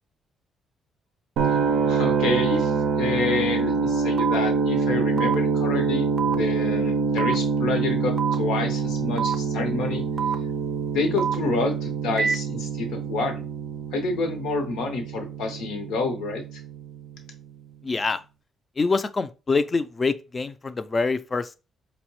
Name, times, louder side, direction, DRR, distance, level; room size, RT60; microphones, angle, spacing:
sound 1, 1.4-17.3, right 5 dB, 85° right, 0.4 m, -26 dB
voice 1, 1.9-6.0 6.3-10.0 10.9-13.5 13.9-16.6, left 3 dB, 90° left, 0.8 m, -28 dB
sound 2, 4.2-4.3 5.2-5.3 6.2-6.4 7.2-7.4 8.2-8.4 9.2-9.4 10.2-10.3 11.2-11.3 12.2-12.3, right 6 dB, 30° right, 0.5 m, -25 dB
voice 2, 17.8-18.2 18.8-21.5, left 4 dB, 30° left, 0.3 m, -25 dB
4.4 x 2.1 x 2.9 m
cardioid pair, 90°, 0 cm